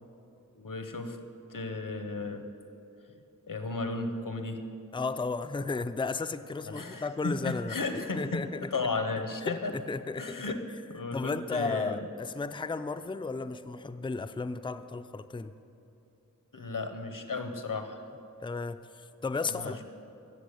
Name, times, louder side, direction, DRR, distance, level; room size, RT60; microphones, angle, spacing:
voice 1, 0.5-1.2 1.5-2.5 3.5-4.7 6.6-9.7 10.2-12.0 16.5-18.0 19.5-19.8, left 3 dB, 70° left, 7 dB, 1.1 m, -34 dB
voice 2, 4.9-8.7 9.4-10.5 11.1-15.5 18.4-19.8, left 4 dB, 15° left, 10 dB, 0.4 m, -34 dB
13.5 x 7.8 x 8.3 m, 2.8 s
wide cardioid pair, 50°, 33 cm